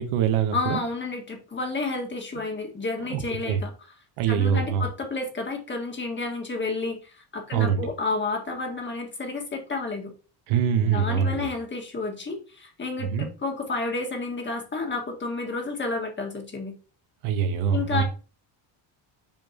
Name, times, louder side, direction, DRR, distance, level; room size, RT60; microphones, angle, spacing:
voice 1, 0.0-0.8 3.1-3.6 4.2-4.9 7.5-7.9 10.5-11.5 13.0-13.3 17.2-18.0, right 7 dB, 80° right, 8 dB, 1.2 m, -24 dB
voice 2, 0.5-3.7 4.3-10.1 10.8-16.7 17.7-18.0, left 3 dB, 25° left, 2 dB, 1.9 m, -31 dB
7.2 x 5.1 x 3.0 m, 0.35 s
cardioid pair, 135°, 49 cm